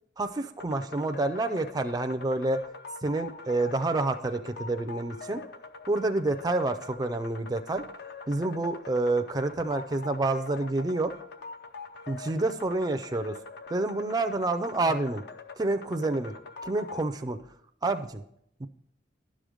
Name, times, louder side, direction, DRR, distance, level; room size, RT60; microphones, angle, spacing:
voice 1, 0.2-2.6 3.0-5.4 5.9-7.8 8.3-11.1 12.1-13.4 13.7-15.2 15.6-16.3 16.6-17.4 17.8-18.2 18.6-18.7, right 2 dB, 20° right, 7 dB, 0.4 m, -28 dB
sound 1, 0.6-17.1, left 4 dB, 60° left, 0.7 m, -44 dB
10.5 x 6.3 x 5.1 m, 0.72 s
head